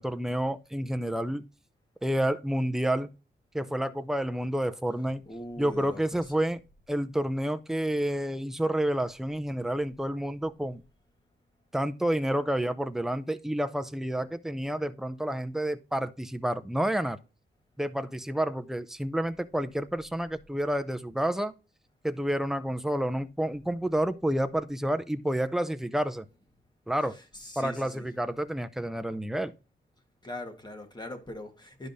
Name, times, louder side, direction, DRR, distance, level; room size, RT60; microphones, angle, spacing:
voice 1, 0.0-1.5 2.0-3.1 3.5-5.2 5.6-6.6 6.9-10.8 11.7-17.2 17.8-21.5 22.0-26.2 26.9-27.2 27.6-29.5, right 1 dB, ahead, 0.5 m, -29 dB
voice 2, 5.2-6.3 27.0-28.1 30.2-31.9, left 1 dB, 25° left, 1.6 m, -41 dB
12.0 x 4.9 x 2.7 m
wide cardioid pair, 120°, 19 cm